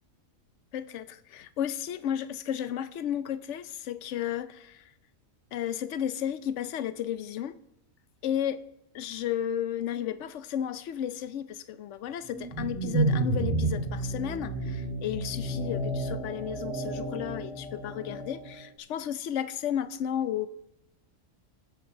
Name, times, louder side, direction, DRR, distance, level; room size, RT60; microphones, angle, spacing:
voice 1, 0.7-4.8 5.5-7.6 8.2-8.6 8.9-20.5, left 10 dB, 65° left, 0.9 m, -33 dB
sound 1, 12.3-18.6, right 2 dB, 5° right, 5.1 m, -31 dB
21.5 x 7.9 x 3.8 m
omnidirectional pair, 1.4 m